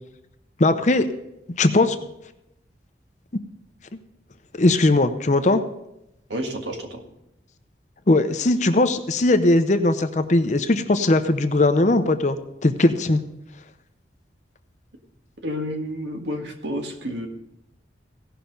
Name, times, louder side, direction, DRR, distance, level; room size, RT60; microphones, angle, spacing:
voice 1, 0.6-1.1 1.6-2.0 4.5-5.6 8.1-13.2, left 2 dB, 40° left, 9 dB, 0.7 m, -19 dB
voice 2, 6.3-7.0 15.4-17.3, equal, 80° right, 3 dB, 1.7 m, -30 dB
16.5 x 5.8 x 5.3 m, 0.86 s
head